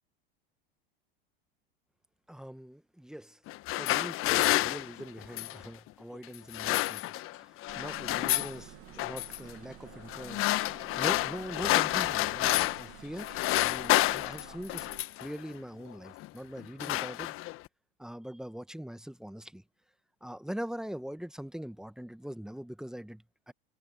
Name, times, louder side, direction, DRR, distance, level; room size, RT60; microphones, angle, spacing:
voice 1, 2.3-3.4 3.7-14.9 15.2-17.4 18.0-19.6 20.2-23.5, equal, ahead, 1.4 m, -42 dB
sound 1, 3.5-5.7 6.3-7.4 7.6-8.6 9.0-9.4 10.1-12.9 13.2-15.3 16.1-16.3 16.6-17.7, left 17 dB, 45° left, 1.4 m, -29 dB
sound 2, 7.7-15.1, right 16 dB, 50° right, 2.6 m, -51 dB
hypercardioid pair, 95°, 30 cm